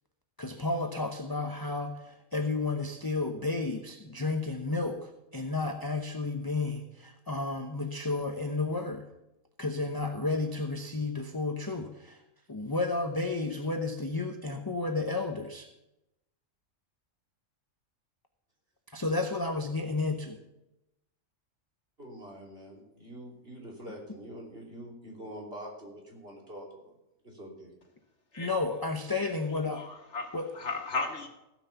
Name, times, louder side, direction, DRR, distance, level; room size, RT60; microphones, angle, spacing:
voice 1, 0.4-9.1 9.6-12.2 12.5-15.7 18.9-20.4 28.4-29.8 30.3-30.5, left 3 dB, 20° left, 0.8 m, -32 dB
voice 2, 22.0-26.9 27.2-27.7, equal, 50° right, 3.4 m, -45 dB
voice 3, 29.2-31.3, left 3 dB, 60° left, 2.0 m, -36 dB
16.5 x 6.1 x 7.0 m
omnidirectional pair, 1.3 m